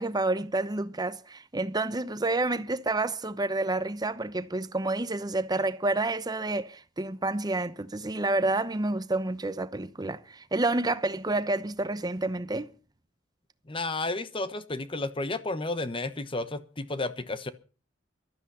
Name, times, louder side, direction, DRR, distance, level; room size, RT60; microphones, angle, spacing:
voice 1, 0.0-12.7, right 2 dB, 20° right, 0.8 m, -29 dB
voice 2, 13.7-17.5, left 2 dB, 25° left, 1.1 m, -32 dB
15.5 x 13.0 x 5.6 m
head